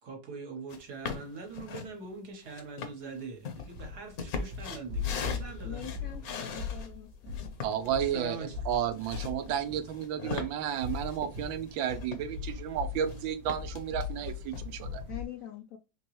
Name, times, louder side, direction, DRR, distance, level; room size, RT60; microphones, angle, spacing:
voice 1, 0.0-6.1 6.5-6.6 7.8-8.6, right 4 dB, 60° right, 1.6 m, -43 dB
sound 1, 0.7-0.8 1.1-1.9 2.5-6.9 7.3-12.5 12.8-13.2 13.5-14.7, left 5 dB, 60° left, 1.1 m, -40 dB
sound 2, 3.5-15.2, left 5 dB, 40° right, 0.9 m, -40 dB
voice 2, 5.6-7.5 15.1-15.8, left 10 dB, 85° left, 0.7 m, -44 dB
voice 3, 7.6-8.4 8.7-15.0, right 9 dB, 85° right, 1.4 m, -32 dB
4.3 x 3.0 x 3.0 m
omnidirectional pair, 2.0 m